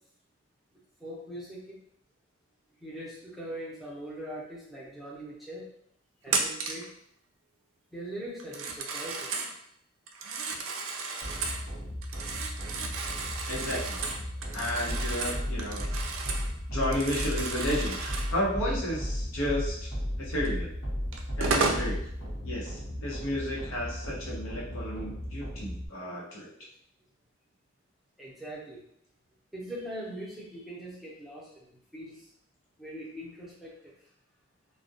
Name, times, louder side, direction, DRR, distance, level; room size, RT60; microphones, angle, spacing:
voice 1, 1.0-1.8 2.8-5.6 6.2-6.9 7.9-9.3 28.2-28.8 29.5-32.3 32.8-33.9, right 1 dB, ahead, -7 dB, 0.6 m, -41 dB
Telephone, 6.3-6.9 8.4-9.5 10.1-11.6 12.0-16.5 16.8-18.3 20.4-20.5 21.1-21.9, right 4 dB, 75° right, 0.3 m, -33 dB
sound 1, 11.2-25.9, equal, 60° left, 0.8 m, -35 dB
voice 2, 13.5-14.0 14.5-15.8 16.7-19.9 20.2-20.7 21.4-22.0 22.4-26.5, left 1 dB, 90° left, -5 dB, 0.8 m, -32 dB
2.2 x 2.1 x 2.6 m, 0.68 s
head